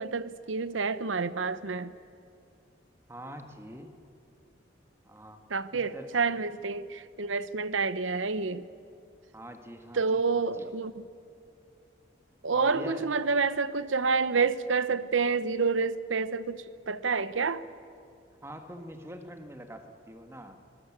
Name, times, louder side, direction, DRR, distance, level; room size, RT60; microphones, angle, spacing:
voice 1, 0.0-1.9 5.5-8.7 9.9-11.1 12.4-17.6, right 4 dB, 90° right, 0.9 m, -28 dB
voice 2, 3.1-4.0 5.0-5.4 5.7-6.1 9.3-10.7 12.5-13.1 18.4-20.6, equal, 15° right, 1.6 m, -44 dB
25.0 x 19.5 x 8.7 m
head